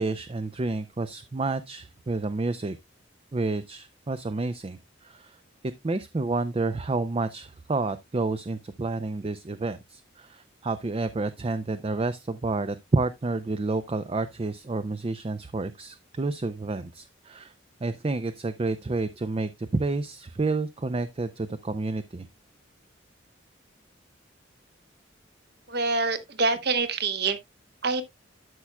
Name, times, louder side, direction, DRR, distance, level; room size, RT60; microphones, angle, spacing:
voice 1, 0.0-2.8 3.3-5.4 5.8-17.5 17.8-22.3, right 3 dB, 30° right, 0.4 m, -29 dB
voice 2, 25.7-27.4 27.8-28.0, right 3 dB, 55° right, 1.1 m, -25 dB
12.5 x 6.0 x 2.2 m
head